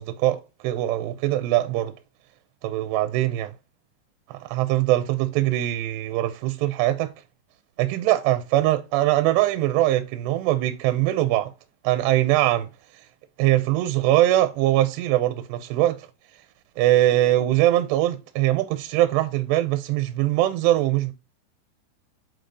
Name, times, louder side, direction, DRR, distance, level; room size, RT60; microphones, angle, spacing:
voice 1, 0.0-1.9 2.6-3.5 4.3-7.1 7.8-11.5 11.8-12.7 13.4-16.0 16.8-21.1, right 14 dB, 85° right, 2.5 m, -22 dB
6.5 x 4.9 x 3.8 m
omnidirectional pair, 5.3 m